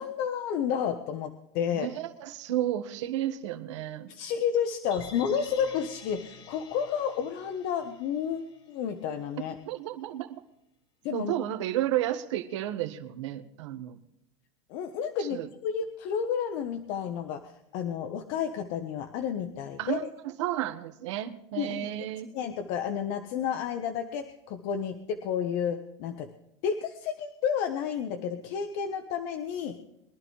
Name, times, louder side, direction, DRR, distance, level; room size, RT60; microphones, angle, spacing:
voice 1, 0.0-1.9 4.1-9.5 11.0-11.3 14.7-17.4 17.7-20.0 21.5-21.9 22.3-26.3 26.6-29.8, left 8 dB, 55° left, 6 dB, 1.3 m, -31 dB
voice 2, 1.8-4.1 9.7-10.4 11.1-14.0 15.2-15.5 19.8-20.1 20.4-22.3, right 13 dB, 80° right, 7 dB, 1.7 m, -32 dB
sound 1, 4.9-9.1 9.4-9.5, left 4 dB, 35° left, 3.2 m, -49 dB
23.0 x 11.5 x 3.4 m, 0.83 s
supercardioid pair, 130°, 15 cm